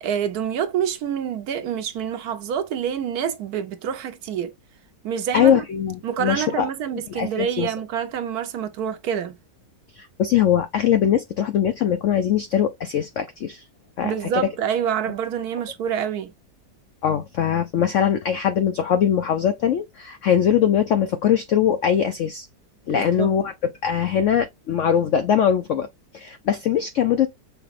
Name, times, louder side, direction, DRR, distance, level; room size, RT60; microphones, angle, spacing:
voice 1, 0.0-4.5 5.0-5.6 6.0-9.3 14.0-16.3 22.9-23.3, right 8 dB, 70° right, 1.0 m, -27 dB
voice 2, 5.3-6.7 7.1-7.7 9.9-13.6 14.0-14.5 17.0-22.5 22.9-23.5 23.8-25.9 26.1-27.3, left 9 dB, 75° left, 0.6 m, -21 dB
5.9 x 3.6 x 2.4 m
omnidirectional pair, 1.9 m